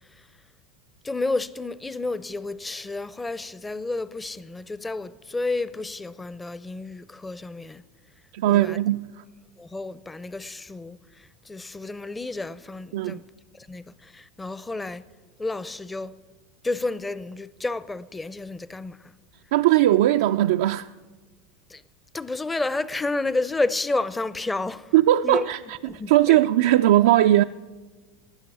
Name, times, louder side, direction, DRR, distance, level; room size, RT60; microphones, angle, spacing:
voice 1, 1.0-7.8 8.5-8.8 9.6-11.0 11.5-13.2 13.5-15.0 15.4-16.1 16.6-19.1 21.7-21.8 22.1-24.9 25.2-25.4 25.9-26.4, left 2 dB, 15° left, 0.6 m, -30 dB
voice 2, 8.3-9.1 12.9-13.2 19.5-20.9 24.9-25.8 26.1-27.4, right 14 dB, 70° right, 0.3 m, -19 dB
13.0 x 9.5 x 8.5 m
hypercardioid pair, 90°, 0 cm